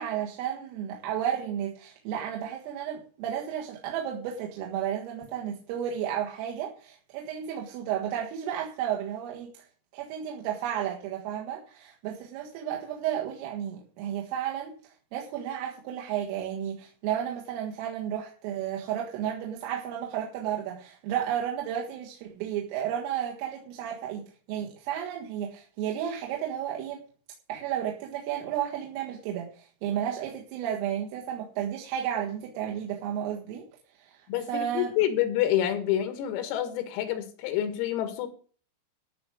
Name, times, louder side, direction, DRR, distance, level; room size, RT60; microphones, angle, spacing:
voice 1, 0.0-9.6 9.9-14.7 15.1-27.0 27.5-33.7 34.0-34.2 34.5-34.9, right 10 dB, 80° right, 0 dB, 4.2 m, -32 dB
voice 2, 34.3-38.3, left 11 dB, 90° left, 9 dB, 4.6 m, -28 dB
14.0 x 6.2 x 8.4 m, 0.41 s
omnidirectional pair, 5.9 m